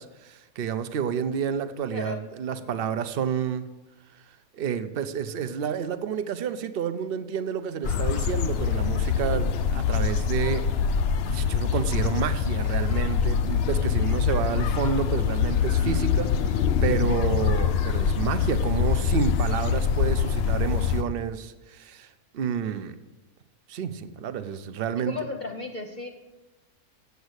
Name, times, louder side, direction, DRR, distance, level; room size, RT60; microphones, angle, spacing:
voice 1, 0.0-3.7 4.5-10.7 11.2-22.1 22.3-22.9 23.7-25.1, right 8 dB, 55° right, 11 dB, 0.6 m, -30 dB
voice 2, 1.9-2.2 2.5-2.7 25.0-26.1, left 4 dB, 35° left, 2 dB, 0.9 m, -35 dB
sound 1, 7.8-21.0, left 7 dB, 70° left, 0.6 m, -24 dB
8.1 x 8.0 x 8.0 m, 1.1 s
omnidirectional pair, 1.6 m